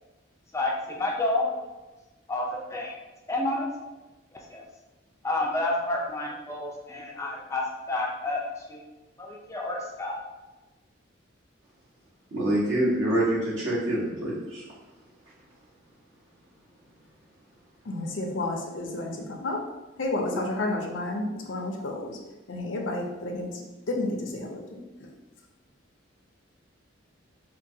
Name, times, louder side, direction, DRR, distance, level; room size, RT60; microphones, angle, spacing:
voice 1, 0.5-1.6 2.3-2.9 3.3-3.7 4.5-4.7 5.2-8.8 9.2-10.2, left 2 dB, 15° left, -1 dB, 0.4 m, -29 dB
voice 2, 12.3-14.6, right 1 dB, 70° right, -7 dB, 1.4 m, -26 dB
voice 3, 17.9-19.6 20.0-22.2 22.5-24.8, left 2 dB, 70° left, 2 dB, 0.6 m, -31 dB
4.5 x 2.2 x 2.7 m, 1.1 s
head